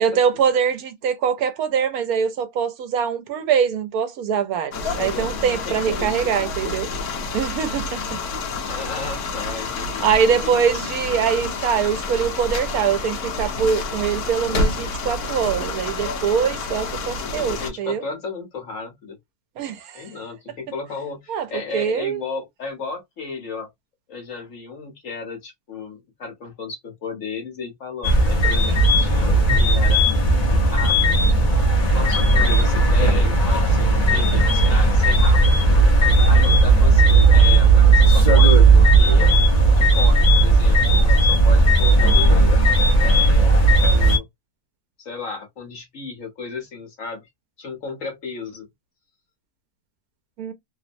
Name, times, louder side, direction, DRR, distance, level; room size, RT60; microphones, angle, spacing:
voice 1, 0.0-6.9 7.3-8.0 10.0-18.0 19.6-20.0 21.3-21.5 21.7-22.2 50.4-50.5, right 7 dB, 75° right, 1.0 m, -23 dB
sound 1, 4.7-17.7, left 3 dB, 75° left, 1.2 m, -28 dB
voice 2, 5.5-7.0 8.5-10.6 17.3-19.2 19.9-23.7 24.1-30.0 30.7-31.0 31.9-35.4 35.7-35.9 36.2-39.3 39.7-42.6 43.0-43.6 43.9-44.2 45.0-47.3 47.6-48.7, left 4 dB, 60° left, 1.4 m, -34 dB
sound 2, 28.0-44.2, right 2 dB, 30° left, 0.8 m, -15 dB
3.1 x 2.0 x 2.5 m
omnidirectional pair, 1.6 m